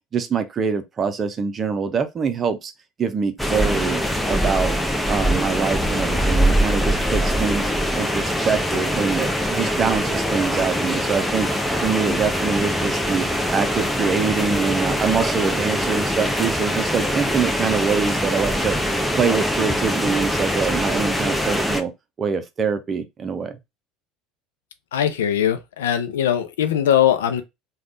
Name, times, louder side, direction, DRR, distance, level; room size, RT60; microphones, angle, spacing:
voice 1, 0.1-2.7 3.0-4.0 4.3-4.8 5.1-7.7 8.0-11.5 11.8-21.9 22.2-23.6, right 5 dB, 35° right, 0.6 m, -24 dB
sound 1, 3.4-21.8, equal, 5° left, 0.6 m, -23 dB
voice 2, 24.9-27.4, left 10 dB, 80° left, 0.4 m, -20 dB
3.4 x 2.3 x 2.6 m
hypercardioid pair, 70°, 0 cm